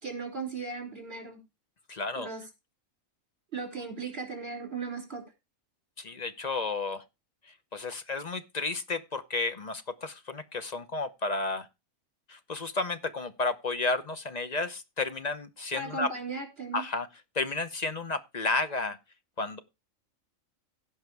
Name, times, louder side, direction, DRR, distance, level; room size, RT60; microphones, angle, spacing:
voice 1, 0.0-1.4 2.2-2.4 3.5-5.3 15.7-16.8, right 4 dB, 45° right, 3.9 m, -37 dB
voice 2, 1.9-2.3 6.0-7.0 7.4-11.7 12.3-16.1 16.7-17.1 17.3-19.0 19.4-19.6, left 3 dB, 35° left, 0.8 m, -32 dB
16.0 x 5.4 x 4.7 m
omnidirectional pair, 1.4 m